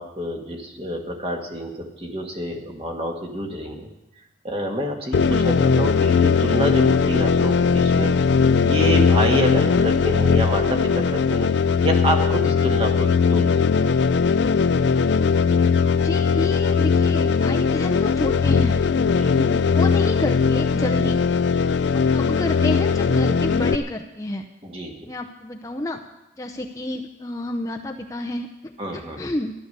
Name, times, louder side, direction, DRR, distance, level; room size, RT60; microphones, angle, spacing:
voice 1, 0.0-3.9 4.4-8.1 8.6-11.5 11.8-13.9 19.2-19.4 21.0-21.1 24.6-25.1 28.8-29.2, equal, 30° right, 2 dB, 1.9 m, -27 dB
sound 1, 5.1-23.8, left 5 dB, 75° left, 0.4 m, -19 dB
voice 2, 15.9-18.8 19.3-21.2 21.9-24.4 25.0-26.0 26.4-29.5, left 1 dB, 20° left, 2 dB, 0.7 m, -30 dB
13.5 x 11.5 x 6.8 m, 0.92 s
head